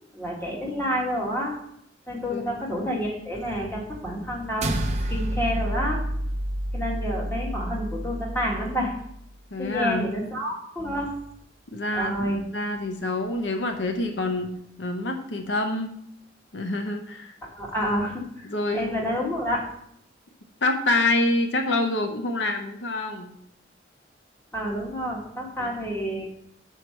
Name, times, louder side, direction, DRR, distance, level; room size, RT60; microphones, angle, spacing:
voice 1, 0.1-1.6 2.1-4.8 5.0-6.0 6.7-8.9 9.6-11.1 11.9-12.4 17.4-19.7 24.5-26.3, equal, 15° left, -2 dB, 1.7 m, -29 dB
sound 1, 4.6-9.2, right 1 dB, 40° right, 0.6 m, -29 dB
voice 2, 9.5-10.1 11.7-14.5 14.8-15.9 16.5-17.3 18.5-18.9 20.6-23.4 25.6-25.7, left 2 dB, 80° left, 5 dB, 0.7 m, -26 dB
5.7 x 4.6 x 6.5 m, 0.73 s
head